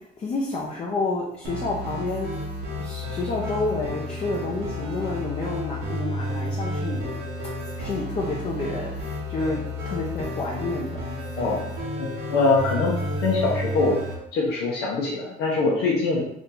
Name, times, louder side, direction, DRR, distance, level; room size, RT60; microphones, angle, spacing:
voice 1, 0.0-2.3 2.8-7.2 7.8-9.6 9.8-11.0, left 2 dB, 40° left, -2 dB, 0.7 m, -29 dB
sound 1, 1.4-14.2, left 1 dB, 80° right, 1.4 m, -31 dB
voice 2, 12.0-14.0 14.3-16.2, left 3 dB, 90° left, -4 dB, 1.0 m, -23 dB
3.6 x 2.8 x 3.8 m, 0.75 s
cardioid pair, 110°, 17 cm